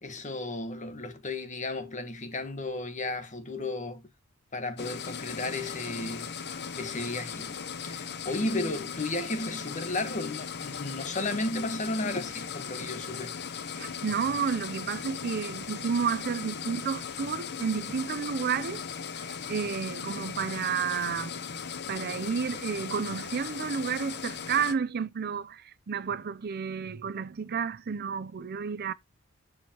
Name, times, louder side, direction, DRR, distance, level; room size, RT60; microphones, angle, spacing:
voice 1, 0.0-4.1 4.5-6.3 6.8-7.5 7.8-13.3, left 2 dB, 35° left, 1.3 m, -34 dB
sound 1, 4.8-24.8, left 6 dB, 55° left, 0.8 m, -38 dB
voice 2, 13.8-18.8 19.2-21.3 21.9-28.9, right 6 dB, 50° right, 0.5 m, -31 dB
13.5 x 4.8 x 2.9 m
head